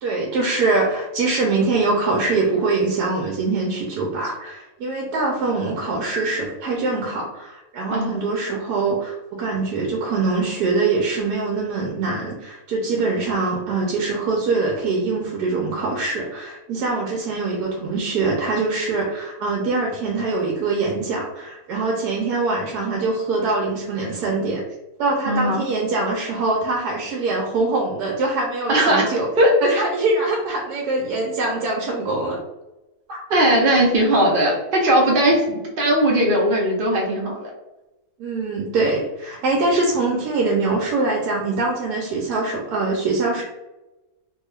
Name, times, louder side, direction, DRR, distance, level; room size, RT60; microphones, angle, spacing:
voice 1, 0.0-24.6 25.0-29.3 29.6-32.4 33.1-33.2 35.5-35.6 38.2-43.4, right 3 dB, 85° right, -1 dB, 1.1 m, -23 dB
voice 2, 7.9-8.2 25.3-25.6 28.7-29.1 29.4-29.5 33.3-35.4 35.8-37.5, right 1 dB, 50° right, -1 dB, 0.6 m, -18 dB
3.0 x 2.2 x 3.1 m, 1.0 s
omnidirectional pair, 1.7 m